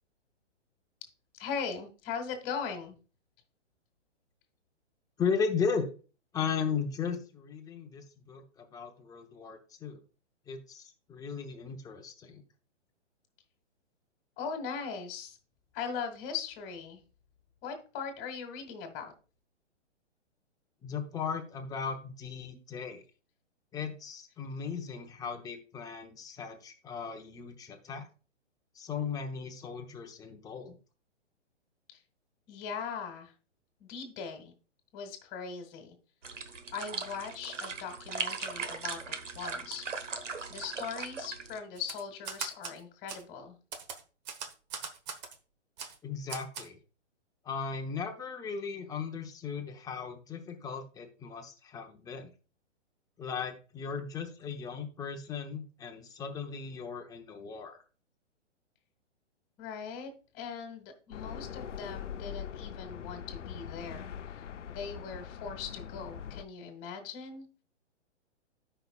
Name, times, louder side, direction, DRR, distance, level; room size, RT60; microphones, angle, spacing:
voice 1, 1.3-3.0 14.4-15.4 15.7-17.0 17.6-19.1 31.9-32.0 32.5-33.3 33.8-34.5 34.9-36.0 36.7-39.9 40.5-43.6 59.6-67.5, left 6 dB, 30° left, 6 dB, 1.9 m, -40 dB
voice 2, 5.2-5.9 6.3-10.0 10.5-12.4 20.8-23.0 23.7-28.1 28.7-30.8 46.0-46.8 47.4-52.3 53.2-57.8, left 6 dB, 10° left, 4 dB, 0.8 m, -36 dB
sound 1, 36.2-41.6, right 4 dB, 85° right, 1.3 m, -38 dB
Typewriter, 41.8-42.8 43.1-43.2 43.7-45.4 45.8-46.0 46.3-46.7, right 6 dB, 35° right, 1.2 m, -40 dB
sound 2, 61.1-66.4, left 8 dB, 85° left, 0.6 m, -42 dB
13.0 x 5.6 x 2.3 m, 0.35 s
hypercardioid pair, 135°, 36 cm